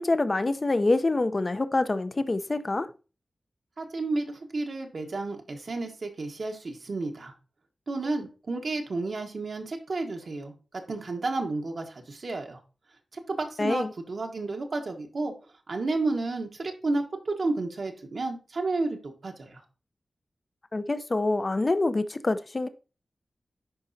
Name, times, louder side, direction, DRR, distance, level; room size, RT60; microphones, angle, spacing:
voice 1, 0.0-2.9 13.6-13.9 20.7-22.7, left 2 dB, 40° left, 0.6 m, -26 dB
voice 2, 3.8-7.3 7.9-12.6 13.1-15.3 15.7-19.6, right 3 dB, 70° right, 1.2 m, -31 dB
10.5 x 4.2 x 2.7 m
wide cardioid pair, 65°, 0 cm